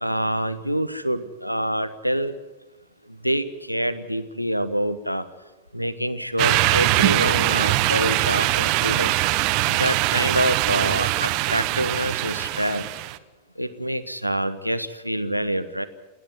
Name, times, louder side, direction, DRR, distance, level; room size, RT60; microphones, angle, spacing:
voice 1, 0.0-2.3 3.2-5.2 5.7-9.1 9.7-12.9 13.6-15.9, equal, 90° right, 10 dB, 1.2 m, -26 dB
sound 1, 6.4-13.2, right 17 dB, 45° right, 1.0 m, -22 dB
28.5 x 11.0 x 9.6 m, 1.1 s
figure-of-eight pair, 90°, 0 cm